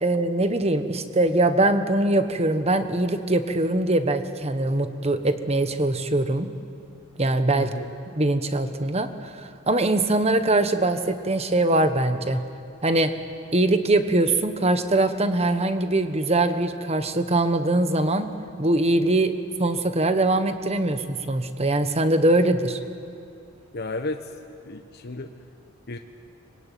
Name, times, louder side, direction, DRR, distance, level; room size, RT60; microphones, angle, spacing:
voice 1, 0.0-6.5 7.2-7.7 8.2-9.3 9.7-12.4 12.8-13.1 13.5-18.3 18.6-19.3 19.6-22.8, right 2 dB, 30° right, 9 dB, 1.3 m, -22 dB
voice 2, 7.5-7.9 23.7-24.3 24.6-25.3 25.9-26.0, left 2 dB, 50° left, 5 dB, 1.2 m, -33 dB
25.0 x 22.0 x 9.3 m, 2.5 s
head